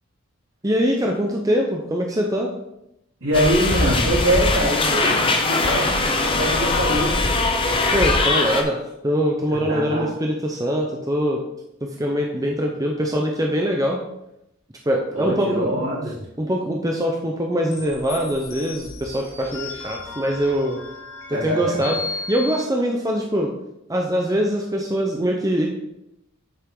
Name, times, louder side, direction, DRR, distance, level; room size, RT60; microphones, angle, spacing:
voice 1, 0.6-2.5 7.9-11.4 11.8-14.0 14.9-15.7 16.4-20.8 21.4-22.0 22.3-23.5 23.9-25.7, equal, 15° right, 0 dB, 0.7 m, -23 dB
voice 2, 3.2-7.4 9.7-10.1 15.1-16.1 21.3-21.9, equal, 65° right, -6 dB, 3.2 m, -23 dB
sound 1, 3.3-8.6, left 2 dB, 25° left, 0.7 m, -21 dB
sound 2, 17.7-22.6, left 4 dB, 65° left, 2.0 m, -35 dB
7.9 x 6.3 x 3.8 m, 0.83 s
head